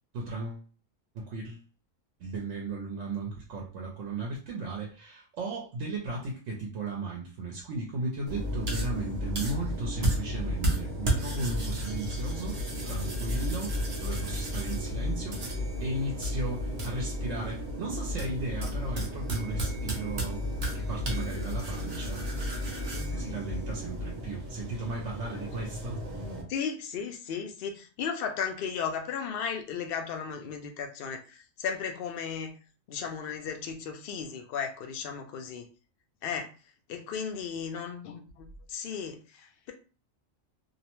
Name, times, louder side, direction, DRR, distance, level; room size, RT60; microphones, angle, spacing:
voice 1, 0.1-0.7 1.1-1.6 2.2-20.4 20.7-22.7 23.0-26.0, right 2 dB, 70° right, 0.9 m, -36 dB
sound 1, 8.3-26.4, equal, 40° right, 0.6 m, -32 dB
voice 2, 22.9-23.3 25.3-25.4 26.5-32.5 32.9-35.6 36.2-36.5 36.9-39.7, left 6 dB, 60° left, 0.6 m, -35 dB
2.7 x 2.0 x 2.9 m
omnidirectional pair, 1.4 m